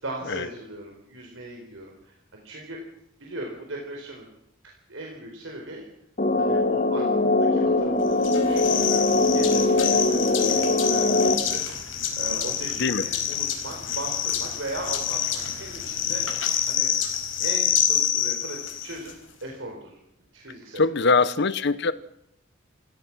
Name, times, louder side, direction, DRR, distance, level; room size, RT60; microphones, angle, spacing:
voice 1, 0.0-2.8 3.2-4.3 4.9-5.8 6.4-16.9 17.4-20.0 20.3-21.1, right 1 dB, 80° right, 0 dB, 4.4 m, -38 dB
sound 1, 6.2-11.3, left 2 dB, 45° left, 2.2 m, -22 dB
sound 2, 8.2-19.1, left 9 dB, 80° left, 4.7 m, -27 dB
voice 2, 20.8-21.9, left 4 dB, 60° left, 15 dB, 0.9 m, -22 dB
28.0 x 16.5 x 6.1 m, 0.78 s
head